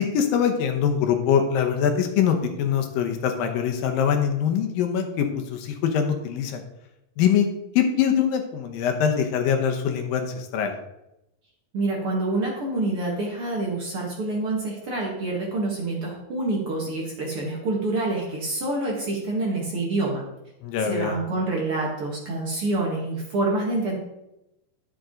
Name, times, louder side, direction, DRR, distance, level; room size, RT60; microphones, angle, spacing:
voice 1, 0.0-6.6 7.2-7.5 7.8-10.7 20.6-21.2, left 8 dB, 80° left, 5 dB, 2.6 m, -23 dB
voice 2, 11.7-20.2 20.8-24.0, right 2 dB, 45° right, -2 dB, 2.1 m, -27 dB
10.5 x 7.6 x 3.8 m, 0.88 s
omnidirectional pair, 4.1 m